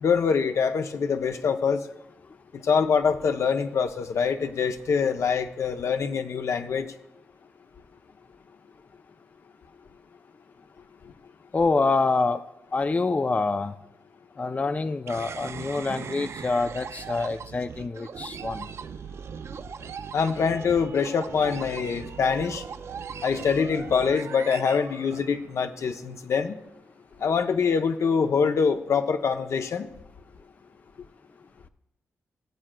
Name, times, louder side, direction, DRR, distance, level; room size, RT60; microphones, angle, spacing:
voice 1, 0.0-1.9 2.5-6.9 20.1-22.6 23.2-26.6 27.2-29.9, left 6 dB, 65° left, 0.6 m, -24 dB
voice 2, 11.5-12.4 12.7-13.7 14.4-18.7, left 3 dB, 30° left, 0.4 m, -26 dB
sound 1, 15.1-25.7, right 6 dB, 55° right, 0.3 m, -39 dB
19.5 x 7.4 x 2.2 m
cardioid pair, 65°, 5 cm